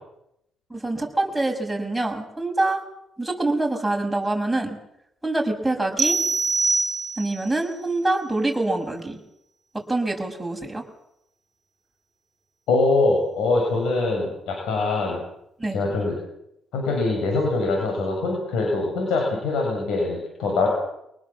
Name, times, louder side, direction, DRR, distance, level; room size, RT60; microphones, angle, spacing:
voice 1, 0.7-2.8 3.2-4.8 5.2-6.2 7.2-9.2 9.9-10.8 15.6-15.8, right 2 dB, 5° right, 0 dB, 6.5 m, -25 dB
sound 1, 6.0-7.5, right 3 dB, 40° right, 2.3 m, -23 dB
voice 2, 12.7-15.2 15.7-16.2 16.7-20.7, left 3 dB, 85° left, 0 dB, 7.2 m, -23 dB
24.5 x 19.5 x 7.4 m, 0.78 s
cardioid pair, 90°, 0 cm